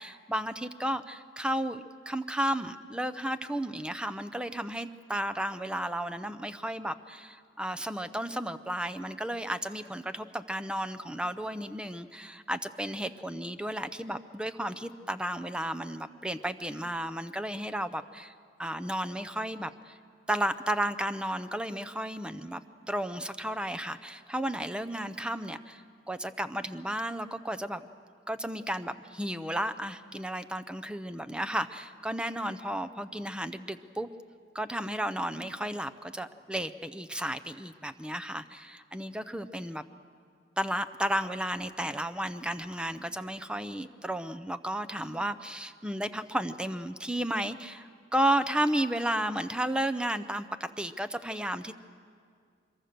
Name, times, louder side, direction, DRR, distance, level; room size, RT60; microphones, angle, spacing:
voice 1, 0.0-18.3 18.6-20.0 20.3-22.6 22.9-25.8 26.1-27.9 28.3-34.1 34.5-39.8 40.6-51.7, right 1 dB, 5° right, 11 dB, 0.6 m, -33 dB
25.0 x 22.5 x 6.7 m, 2.2 s
head